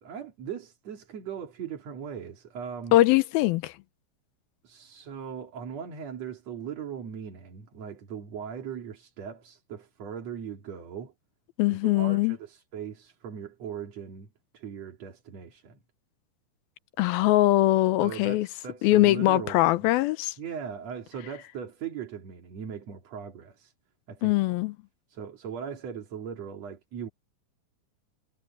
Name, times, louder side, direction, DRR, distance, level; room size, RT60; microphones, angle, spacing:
voice 1, 0.0-3.0 4.6-11.1 11.7-15.8 18.0-19.9 20.4-23.7 24.1-24.3 25.1-27.1, right 7 dB, 50° right, 3.3 m, -39 dB
voice 2, 2.9-3.7 11.6-12.4 17.0-18.5 18.8-20.3 24.2-24.7, left 16 dB, 85° left, 2.6 m, -22 dB
omnidirectional pair, 4.2 m